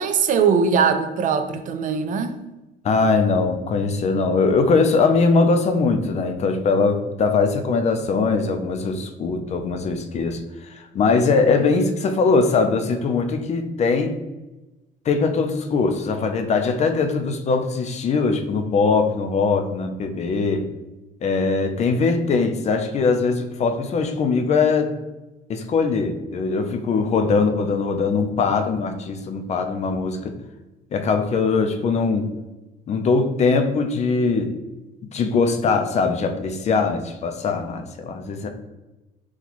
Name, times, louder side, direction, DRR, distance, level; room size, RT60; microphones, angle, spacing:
voice 1, 0.0-2.4, right 6 dB, 50° right, 8 dB, 0.4 m, -21 dB
voice 2, 2.8-10.4 10.7-14.2 15.1-20.7 21.2-24.9 25.5-30.3 30.9-32.3 32.9-34.5 35.1-38.5, left 4 dB, 40° left, 6 dB, 0.4 m, -21 dB
4.0 x 2.3 x 3.0 m, 1.1 s
cardioid pair, 110°, 17 cm